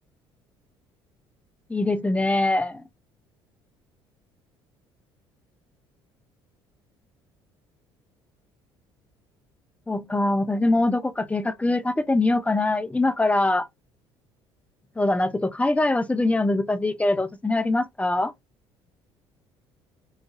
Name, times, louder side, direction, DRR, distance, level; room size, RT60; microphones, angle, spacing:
voice 1, 1.7-2.8 9.9-13.7 15.0-18.3, left 2 dB, 10° left, 0.5 m, -23 dB
3.9 x 2.6 x 2.4 m
hypercardioid pair, 60°, 13 cm